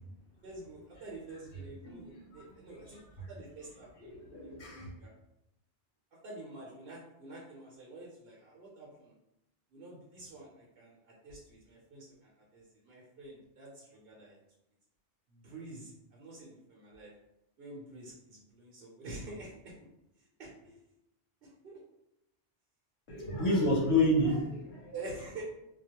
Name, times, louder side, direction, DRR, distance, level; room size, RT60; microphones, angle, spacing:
voice 1, 0.4-3.0 3.3-4.7 5.0-5.1 6.2-9.1 9.7-14.4 15.3-17.1 17.6-19.9 20.2-20.8 21.4-21.8 24.9-25.4, right 2 dB, 65° right, -5 dB, 0.8 m, -48 dB
voice 2, 1.8-2.4 2.9-3.3 4.0-4.9 23.1-24.9, left 1 dB, 90° left, -3 dB, 0.9 m, -30 dB
2.3 x 2.1 x 2.8 m, 0.86 s
omnidirectional pair, 1.2 m